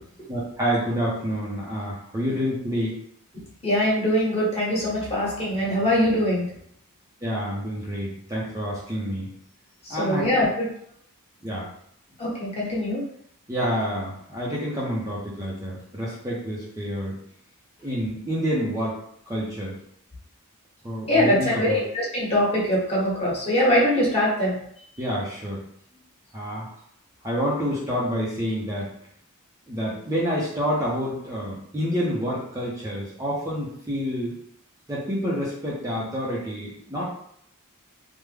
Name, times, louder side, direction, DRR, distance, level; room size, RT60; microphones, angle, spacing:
voice 1, 0.3-3.0 7.2-9.3 9.9-10.2 11.4-11.7 13.5-17.2 17.8-19.0 19.3-19.8 20.8-21.8 25.0-25.6 26.3-26.7 27.2-28.9 29.7-34.4 34.9-37.0, equal, 15° right, -6 dB, 0.6 m, -28 dB
voice 2, 3.6-6.5 9.9-10.7 12.2-13.0 21.1-24.6, left 1 dB, 30° left, -6 dB, 1.3 m, -22 dB
3.4 x 2.1 x 3.3 m, 0.68 s
head